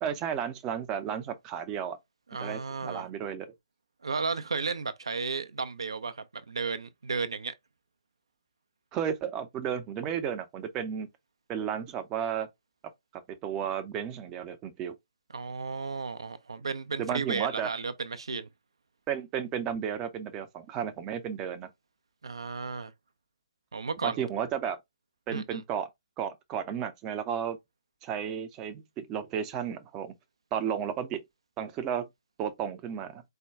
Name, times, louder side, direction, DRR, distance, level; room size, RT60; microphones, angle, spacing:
voice 1, 0.0-2.0 2.4-3.5 8.9-11.1 11.5-12.5 13.4-14.9 17.0-17.7 19.1-21.7 24.0-24.8 25.3-25.9 26.2-27.6 28.0-30.1 30.5-31.2 31.6-32.1 32.4-33.2, right 8 dB, 20° right, 0.5 m, -33 dB
voice 2, 2.3-3.1 4.0-7.5 15.3-18.5 22.2-22.9 23.7-24.2 25.3-25.6, right 4 dB, 65° right, 0.5 m, -34 dB
4.4 x 2.2 x 3.4 m
figure-of-eight pair, 135°, 3 cm